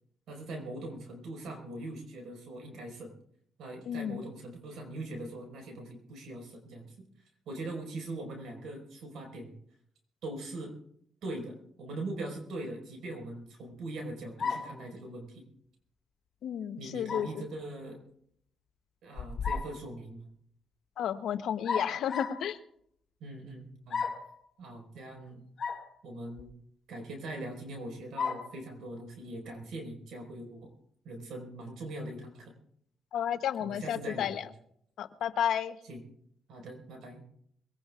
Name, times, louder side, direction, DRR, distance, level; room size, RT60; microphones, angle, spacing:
voice 1, 0.3-3.1 3.6-7.0 7.5-9.5 10.2-10.7 11.2-15.4 16.8-18.0 19.0-20.3 23.2-24.1 24.6-25.4 26.0-26.5 26.9-30.7 31.0-32.5 33.6-34.3 35.8-36.1 36.5-37.2, right 2 dB, 75° right, 3 dB, 4.8 m, -41 dB
voice 2, 3.9-4.2 16.4-17.4 21.0-22.6 33.1-34.5 35.0-35.8, left 9 dB, 75° left, 10 dB, 0.9 m, -32 dB
sound 1, 14.4-14.8 17.1-17.4 19.2-19.8 21.6-22.5 23.9-24.3 25.6-25.9 26.4-26.5 28.2-28.5, left 5 dB, 50° left, 3.1 m, -33 dB
23.0 x 17.5 x 2.4 m, 0.70 s
cardioid pair, 90°, 0 cm